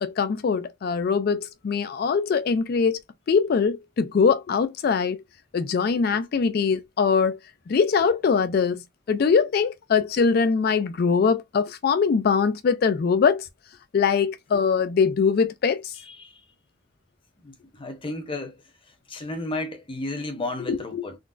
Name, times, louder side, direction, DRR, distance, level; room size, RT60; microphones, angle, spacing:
voice 1, 0.0-3.0 3.3-5.2 5.5-7.4 7.7-8.8 9.1-13.5 13.9-15.9 20.7-21.1, left 5 dB, 55° left, 0.3 m, -22 dB
voice 2, 17.8-18.5 19.1-21.1, left 2 dB, 30° left, 0.8 m, -32 dB
3.8 x 2.1 x 2.4 m
head